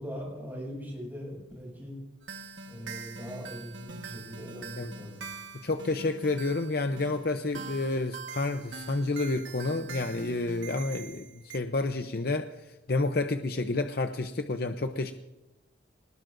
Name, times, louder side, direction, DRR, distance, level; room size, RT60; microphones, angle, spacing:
voice 1, 0.0-1.9 2.7-5.2, equal, 10° right, -3 dB, 6.9 m, -40 dB
sound 1, 2.2-11.6, right 5 dB, 85° right, 1.3 m, -44 dB
voice 2, 4.6-4.9 5.6-15.1, left 2 dB, 55° left, 7 dB, 0.7 m, -30 dB
23.5 x 20.0 x 2.6 m, 1.0 s
head